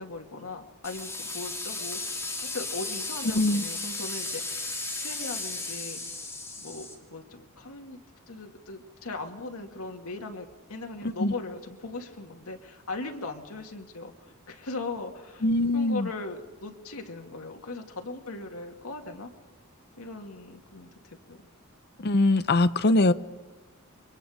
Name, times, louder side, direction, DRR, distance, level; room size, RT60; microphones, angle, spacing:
voice 1, 0.0-4.7 5.0-6.0 6.6-8.0 8.3-15.4 15.7-19.3 20.0-21.4, left 3 dB, 85° left, 3 dB, 2.1 m, -39 dB
sound 1, 0.8-6.9, left 3 dB, 15° left, 3.1 m, -35 dB
voice 2, 15.4-16.1 22.0-23.1, left 2 dB, 50° left, 12 dB, 0.7 m, -22 dB
28.5 x 23.0 x 5.0 m, 1.2 s
head